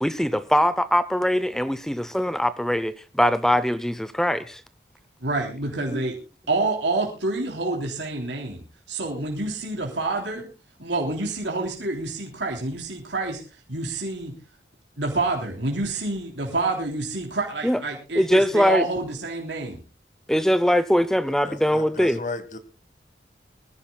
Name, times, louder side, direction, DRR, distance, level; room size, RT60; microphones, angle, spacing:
voice 1, 0.0-4.6 5.9-6.0 17.6-17.8 18.2-18.9 20.3-22.2, equal, 5° left, 13 dB, 0.6 m, -22 dB
voice 2, 5.2-6.2 6.5-10.5 10.8-13.4 13.7-14.3 15.0-19.8, right 2 dB, 90° right, 0 dB, 3.4 m, -28 dB
voice 3, 21.5-22.6, left 3 dB, 45° left, 10 dB, 1.6 m, -34 dB
23.5 x 14.5 x 2.3 m, 0.33 s
head